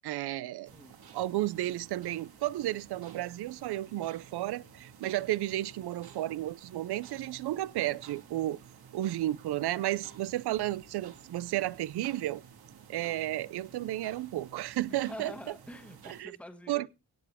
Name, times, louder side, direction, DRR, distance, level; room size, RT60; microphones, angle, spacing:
voice 1, 0.0-0.7 1.1-8.6 8.9-12.4 12.9-15.3 16.0-16.4 16.7-16.9, right 15 dB, 90° right, 0.5 m, -33 dB
voice 2, 0.6-0.9 14.9-16.9, left 1 dB, 5° left, 1.5 m, -46 dB
sound 1, 0.6-16.2, right 7 dB, 70° right, 2.0 m, -53 dB
17.5 x 6.9 x 3.5 m
wide cardioid pair, 130°, 38 cm